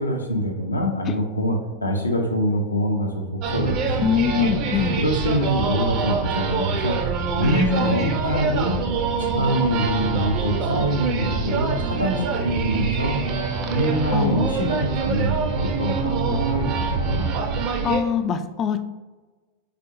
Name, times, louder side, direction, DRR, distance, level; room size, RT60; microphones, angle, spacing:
voice 1, 0.0-4.5 5.0-7.0 7.3-8.7 9.2-13.2 13.7-17.2, equal, 80° left, 2 dB, 0.7 m, -24 dB
sound 1, 3.4-18.0, right 5 dB, 40° right, 0.5 m, -25 dB
voice 2, 4.0-5.0 7.4-8.2 14.1-14.7 17.8-18.8, left 6 dB, 30° left, 10 dB, 0.3 m, -24 dB
5.0 x 3.7 x 2.7 m, 1.3 s
figure-of-eight pair, 90°, 0 cm